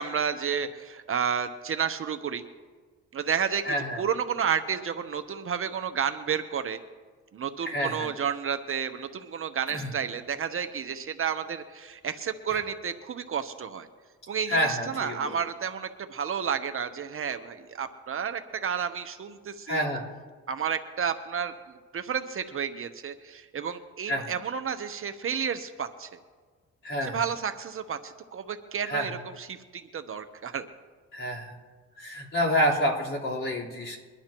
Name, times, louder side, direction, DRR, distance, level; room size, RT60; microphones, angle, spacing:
voice 1, 0.0-2.4 3.1-6.8 7.3-13.9 14.3-19.8 20.5-21.5 21.9-26.1 27.0-30.7, right 7 dB, 45° right, 8 dB, 0.9 m, -31 dB
voice 2, 3.6-4.0 7.6-8.1 9.7-9.9 12.5-12.6 14.5-15.4 19.7-20.0 24.1-24.3 26.8-27.2 28.8-29.1 31.1-31.6 32.0-34.0, equal, 45° left, -5 dB, 4.0 m, -28 dB
23.0 x 11.5 x 3.0 m, 1.5 s
cardioid pair, 90°, 30 cm